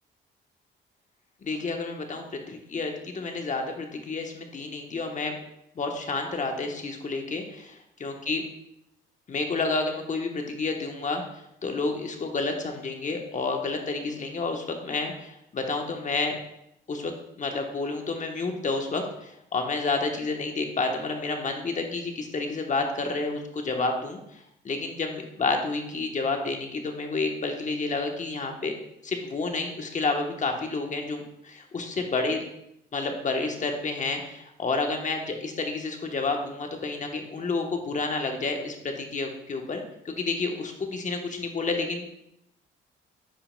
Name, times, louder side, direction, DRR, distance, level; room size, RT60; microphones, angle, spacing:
voice 1, 1.4-5.4 5.8-7.7 8.0-8.4 9.3-16.4 16.9-24.4 24.6-28.7 29.0-32.4 32.9-42.0, left 3 dB, 40° left, 3 dB, 1.1 m, -30 dB
10.0 x 5.7 x 2.2 m, 0.81 s
cardioid pair, 90°, 20 cm